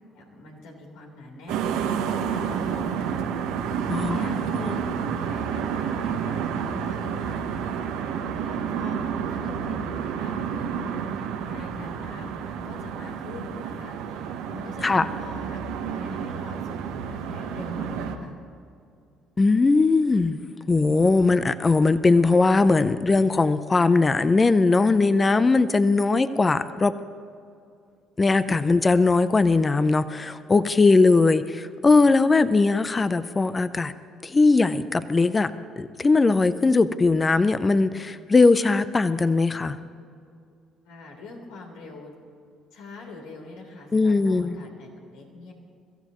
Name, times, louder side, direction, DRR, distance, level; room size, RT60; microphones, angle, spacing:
voice 1, 0.1-3.3 3.6-7.7 8.3-9.0 9.3-14.2 14.5-18.4 40.8-42.1 42.7-45.5, left 2 dB, 80° left, 0 dB, 3.6 m, -43 dB
sound 1, 1.5-18.2, right 7 dB, 80° right, 1.2 m, -30 dB
voice 2, 3.9-4.3 4.5-4.7 14.8-15.1 19.4-20.4 20.7-26.9 28.2-33.9 34.2-39.8 43.9-44.6, left 3 dB, 30° left, 13 dB, 0.7 m, -20 dB
23.0 x 14.5 x 3.1 m, 2.4 s
hypercardioid pair, 60°, 0 cm